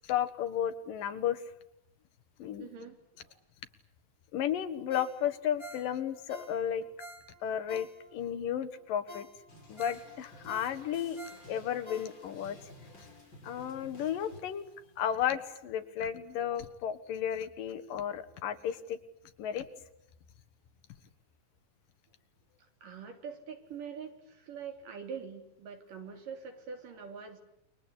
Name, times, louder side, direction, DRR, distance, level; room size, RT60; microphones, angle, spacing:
voice 1, 0.0-1.4 2.4-2.7 4.3-6.8 7.4-9.3 9.7-11.2 11.5-12.6 13.4-14.6 15.0-19.0 19.4-19.7, left 9 dB, 85° left, 10 dB, 3.2 m, -33 dB
voice 2, 2.6-3.4 22.8-27.4, right 6 dB, 80° right, 5 dB, 4.8 m, -44 dB
Ringtone, 4.9-8.4 8.7-8.8 9.1-12.5 12.9-13.0, equal, 5° left, 5.2 m, -50 dB
sound 1, 9.5-15.5, left 1 dB, 30° left, 5.7 m, -54 dB
29.0 x 23.5 x 8.3 m, 0.80 s
omnidirectional pair, 3.8 m